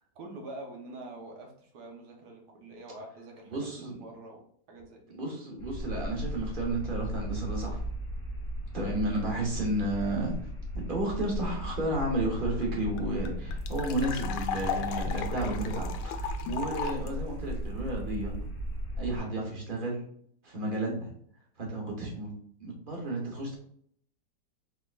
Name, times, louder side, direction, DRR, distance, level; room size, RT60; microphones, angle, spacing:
voice 1, 0.1-5.2, right 2 dB, 70° right, 2 dB, 1.5 m, -46 dB
voice 2, 3.5-3.9 5.1-7.8 8.7-10.3 10.9-18.4 19.0-20.0 20.4-21.1 21.6-22.3 22.6-23.6, right 1 dB, 35° right, -1 dB, 1.2 m, -32 dB
sound 1, 5.6-19.2, equal, 35° left, 1.1 m, -36 dB
sound 2, 12.3-12.4 12.6-12.7 13.0-17.1, left 7 dB, 85° left, 1.2 m, -36 dB
4.6 x 3.6 x 2.4 m, 0.64 s
omnidirectional pair, 1.8 m